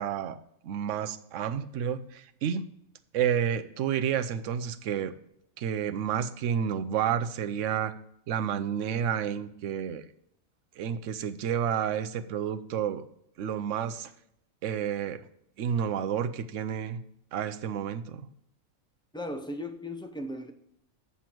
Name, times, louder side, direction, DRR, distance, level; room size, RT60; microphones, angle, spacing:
voice 1, 0.0-2.6 3.1-5.1 5.6-7.9 8.3-10.1 10.8-13.0 13.4-14.1 14.6-15.2 15.6-17.0 17.3-18.3, right 8 dB, 65° right, 10 dB, 1.0 m, -30 dB
voice 2, 19.1-20.5, left 1 dB, 5° left, 5 dB, 0.5 m, -36 dB
7.7 x 7.1 x 4.4 m, 0.74 s
omnidirectional pair, 1.4 m